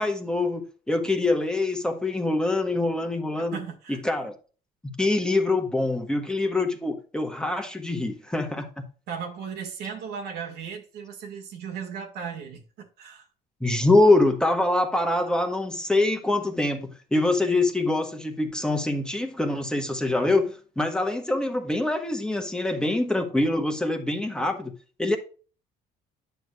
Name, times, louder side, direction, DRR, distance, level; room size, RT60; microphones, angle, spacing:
voice 1, 0.0-3.6 3.9-4.3 4.8-8.7 13.6-24.7 25.0-25.2, left 2 dB, 5° left, 1.2 m, -24 dB
voice 2, 3.5-4.0 9.1-13.3, right 7 dB, 75° right, 1.8 m, -36 dB
9.2 x 6.2 x 2.4 m
cardioid pair, 110°, 17 cm